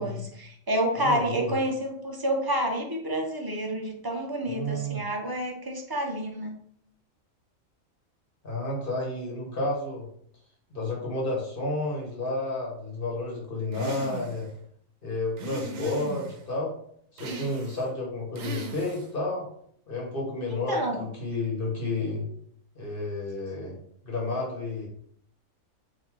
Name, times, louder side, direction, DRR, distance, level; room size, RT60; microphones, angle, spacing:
voice 1, 0.0-6.6 20.5-21.1, right 1 dB, 35° right, 1 dB, 0.3 m, -29 dB
voice 2, 1.0-1.5 4.5-5.0 8.4-10.1 10.7-14.5 15.0-16.7 17.1-19.5 19.9-20.8 21.2-22.2 22.8-23.8 24.0-24.9, left 2 dB, 45° left, -3 dB, 1.3 m, -31 dB
sound 1, 13.7-14.5 15.4-16.4 17.2-17.9 18.4-19.1, right 2 dB, 80° right, 1.1 m, -38 dB
3.8 x 2.6 x 4.5 m, 0.66 s
omnidirectional pair, 1.4 m